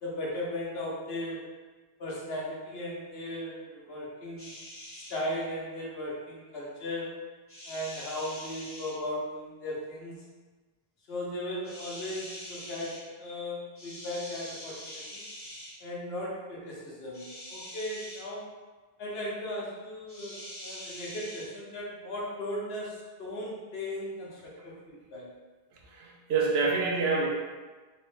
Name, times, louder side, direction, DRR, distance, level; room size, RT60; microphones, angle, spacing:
voice 1, 0.0-1.6 2.0-4.5 5.0-7.3 7.7-10.2 11.1-15.3 15.8-18.5 19.0-25.3, left 1 dB, 75° left, -4 dB, 1.0 m, -37 dB
sound 1, 4.4-5.2 7.5-9.0 11.6-13.0 13.8-15.7 17.1-18.2 20.1-21.5, left 1 dB, 15° left, 0.5 m, -44 dB
voice 2, 25.9-27.3, right 4 dB, 85° right, 0 dB, 0.8 m, -27 dB
3.1 x 2.1 x 3.1 m, 1.3 s
omnidirectional pair, 1.0 m